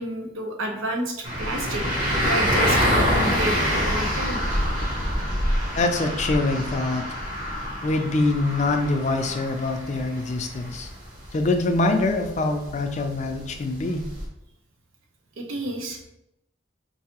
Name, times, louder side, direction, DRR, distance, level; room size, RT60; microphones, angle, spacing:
voice 1, 0.0-1.9 2.2-4.4 15.4-16.0, right 1 dB, 85° right, 2 dB, 0.8 m, -30 dB
sound 1, 1.2-14.3, equal, 40° right, 1.1 m, -26 dB
voice 2, 5.8-7.0 7.8-10.9 11.3-14.1, left 2 dB, 35° left, 5 dB, 0.3 m, -24 dB
4.6 x 2.6 x 2.9 m, 0.83 s
head